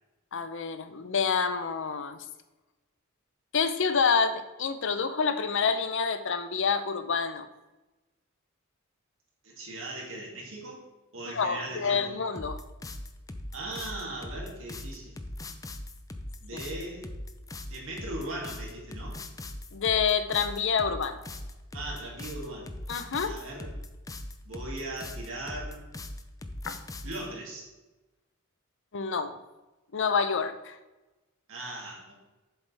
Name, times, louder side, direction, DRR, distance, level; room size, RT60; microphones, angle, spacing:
voice 1, 0.3-2.2 3.5-7.5 11.3-12.6 16.5-16.6 19.7-21.2 22.9-23.4 26.7-26.8 28.9-29.4 29.9-30.8, left 5 dB, 60° left, 10 dB, 0.7 m, -28 dB
voice 2, 9.4-10.8 11.1-12.2 13.5-15.2 16.4-17.1 17.7-19.2 21.7-22.7 23.2-23.7 24.4-25.9 27.0-27.7 31.5-32.1, right 2 dB, 70° right, -2 dB, 2.6 m, -39 dB
sound 1, 12.4-27.2, left 1 dB, 15° left, 0.5 m, -40 dB
8.0 x 7.1 x 3.4 m, 1.1 s
head